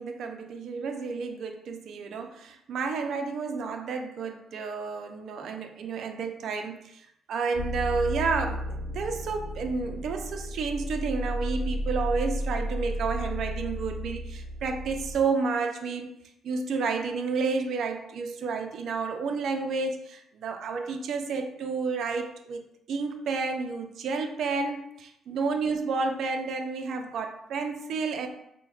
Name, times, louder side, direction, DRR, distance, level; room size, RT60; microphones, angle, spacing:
voice 1, 0.0-7.0 7.3-16.1 16.4-28.3, right 4 dB, 70° right, 5 dB, 0.3 m, -31 dB
sound 1, 7.5-15.1, equal, 55° left, 0.6 m, -33 dB
4.5 x 2.1 x 2.3 m, 0.77 s
cardioid pair, 90°, 0 cm